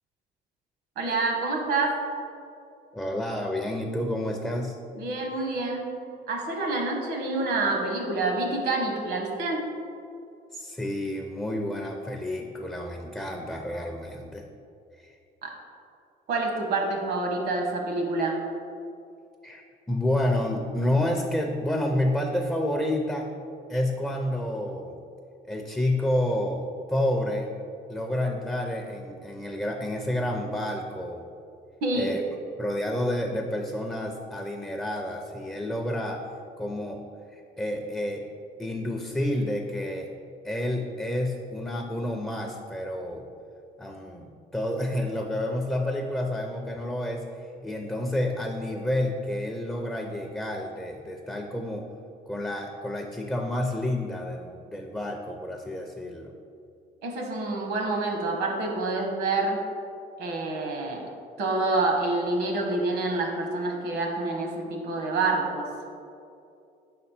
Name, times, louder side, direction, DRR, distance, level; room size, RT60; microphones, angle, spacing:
voice 1, 1.0-2.0 4.9-5.9 6.3-9.6 15.4-15.5 16.3-18.4 31.8-32.2 57.0-59.6 60.2-61.1 61.4-65.7, right 2 dB, 75° right, 1 dB, 1.1 m, -27 dB
voice 2, 2.9-4.8 10.5-14.4 15.0-15.1 19.4-19.6 19.9-23.3 23.7-25.0 25.5-27.5 27.9-31.2 31.9-32.2 32.6-36.2 36.6-37.0 37.3-38.2 38.6-40.1 40.4-43.2 43.8-51.9 52.3-56.3, left 1 dB, 5° left, 2 dB, 0.4 m, -29 dB
5.3 x 4.2 x 4.2 m, 2.5 s
cardioid pair, 110°, 17 cm